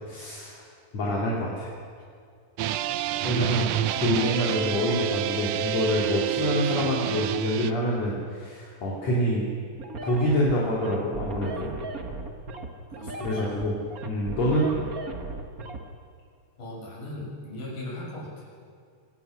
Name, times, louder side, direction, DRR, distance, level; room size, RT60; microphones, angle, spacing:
voice 1, 0.1-0.6 0.9-1.7 3.2-3.7 4.0-9.5 10.0-11.7 13.2-13.8 14.0-14.7, equal, 55° left, -5 dB, 4.1 m, -26 dB
sound 1, 2.6-7.7, right 11 dB, 75° right, 1.6 m, -28 dB
sound 2, 9.8-15.8, right 2 dB, 40° right, 1.4 m, -36 dB
voice 2, 12.9-13.5 16.6-18.5, left 1 dB, 85° left, -4 dB, 8.7 m, -38 dB
24.5 x 19.5 x 6.5 m, 2.3 s
omnidirectional pair, 3.7 m